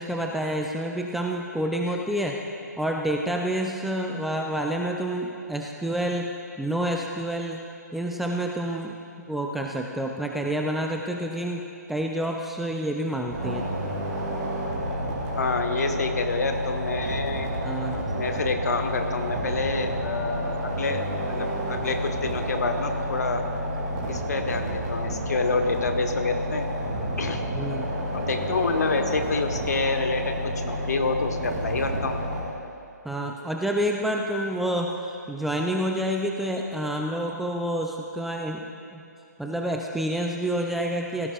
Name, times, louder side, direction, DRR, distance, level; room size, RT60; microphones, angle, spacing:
voice 1, 0.0-2.4 2.8-6.3 6.6-7.6 7.9-13.7 17.6-18.0 27.6-27.9 33.0-39.0 39.4-41.3, right 1 dB, ahead, 0 dB, 0.4 m, -28 dB
sound 1, 13.3-32.4, equal, 25° right, 3.1 m, -30 dB
voice 2, 15.4-17.5 18.1-21.0 21.3-23.4 24.1-26.7 27.2-27.4 28.1-30.4 30.6-32.2, left 4 dB, 65° left, 6 dB, 1.2 m, -27 dB
17.0 x 14.5 x 2.4 m, 2.4 s
figure-of-eight pair, 140°, 10 cm